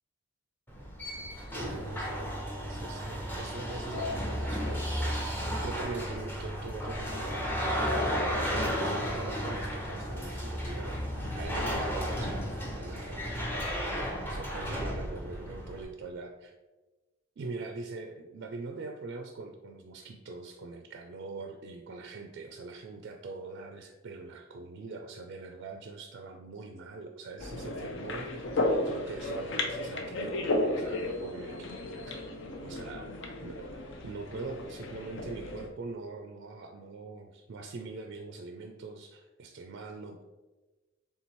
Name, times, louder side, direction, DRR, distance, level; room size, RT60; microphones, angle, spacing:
sound 1, 0.7-15.8, equal, 10° left, 0.7 m, -33 dB
voice 1, 1.5-7.9 8.3-11.0 11.3-16.5 17.4-31.7 32.0-32.2 32.6-40.2, right 3 dB, 55° right, 4 dB, 0.4 m, -43 dB
sound 2, 10.6-15.0, left 2 dB, 85° left, 1.1 m, -53 dB
sound 3, 27.4-35.7, left 1 dB, 65° left, 0.6 m, -34 dB
4.2 x 3.5 x 3.0 m, 1.2 s
head